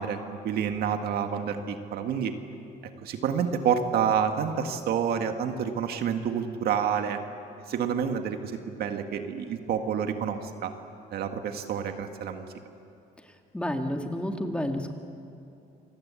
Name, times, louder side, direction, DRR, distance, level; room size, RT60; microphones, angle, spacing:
voice 1, 0.0-2.3 3.0-7.2 7.7-10.7 11.1-12.5, right 7 dB, 65° right, 6 dB, 1.9 m, -28 dB
voice 2, 13.5-14.9, left 1 dB, 5° left, 4 dB, 2.1 m, -30 dB
27.5 x 19.5 x 8.5 m, 2.6 s
cardioid pair, 110°, 17 cm